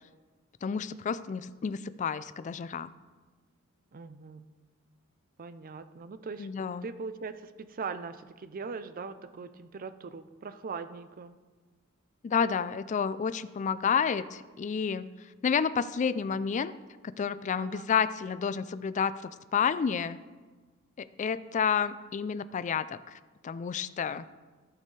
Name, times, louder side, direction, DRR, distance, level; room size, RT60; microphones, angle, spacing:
voice 1, 0.6-2.9 6.4-6.9 12.2-15.1 15.4-16.7 17.0-20.2 21.0-23.0 23.4-24.3, left 6 dB, 35° left, 15 dB, 0.3 m, -30 dB
voice 2, 3.9-4.5 5.4-6.5 6.8-11.4 17.6-17.9, right 5 dB, 45° right, 12 dB, 0.5 m, -40 dB
15.0 x 6.7 x 3.2 m, 1.3 s
head